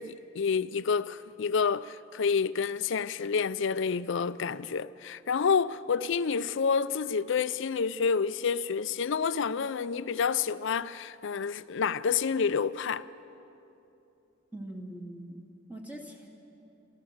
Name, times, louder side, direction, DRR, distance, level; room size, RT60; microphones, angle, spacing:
voice 1, 0.0-13.1, left 6 dB, 65° left, 0.5 m, -29 dB
voice 2, 14.5-15.4 15.7-16.3, right 1 dB, 10° right, 2.3 m, -42 dB
27.0 x 14.5 x 6.6 m
head